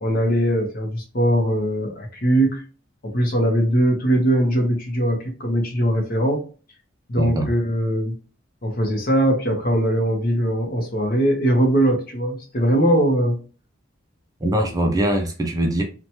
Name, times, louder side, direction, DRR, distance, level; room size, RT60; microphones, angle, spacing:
voice 1, 0.0-2.6 3.0-6.4 7.1-8.1 8.6-13.4, right 1 dB, 45° left, 2 dB, 0.8 m, -20 dB
voice 2, 7.2-7.5 14.4-15.8, right 1 dB, 20° right, 3 dB, 0.4 m, -22 dB
2.9 x 2.2 x 2.8 m, 0.36 s
head